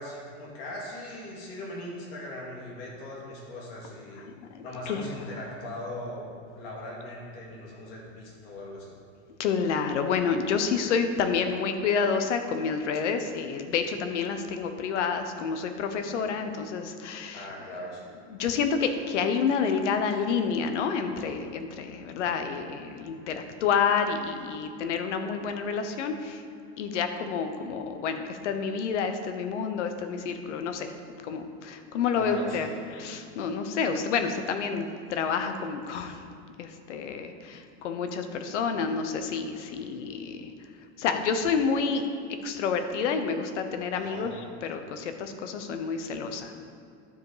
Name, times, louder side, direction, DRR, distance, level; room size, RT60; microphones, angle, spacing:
voice 1, 0.0-4.2 4.6-6.3 6.5-9.0 17.3-18.1 32.1-32.8 43.9-44.3, left 1 dB, 55° left, -3 dB, 2.3 m, -39 dB
voice 2, 4.2-5.1 9.4-17.5 18.3-26.4 26.8-30.9 31.2-36.2 36.6-40.5 41.0-46.5, left 6 dB, 85° left, 7 dB, 1.0 m, -29 dB
12.0 x 5.0 x 5.0 m, 2.4 s
supercardioid pair, 160°, 35 cm